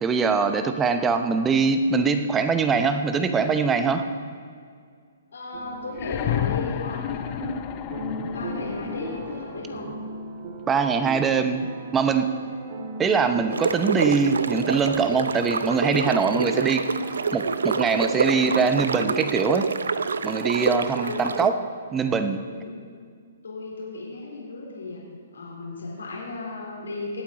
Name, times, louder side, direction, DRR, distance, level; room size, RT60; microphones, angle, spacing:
voice 1, 0.0-4.1 10.7-12.3 13.0-16.9 17.3-19.7 20.2-21.5 21.9-22.4, right 5 dB, 15° right, 8 dB, 0.8 m, -23 dB
voice 2, 5.3-7.5 8.0-9.9 20.9-21.5 22.2-22.7 23.4-25.0 25.3-27.2, left 3 dB, 85° left, -3 dB, 3.9 m, -35 dB
sound 1, 5.5-19.2, right 3 dB, 40° right, 1.4 m, -38 dB
sound 2, 5.9-9.7 11.0-11.1, left 13 dB, 35° left, 0.5 m, -31 dB
sound 3, 13.5-21.5, right 5 dB, 85° right, 0.5 m, -27 dB
19.5 x 8.4 x 4.1 m, 2.1 s
hypercardioid pair, 145°, 0 cm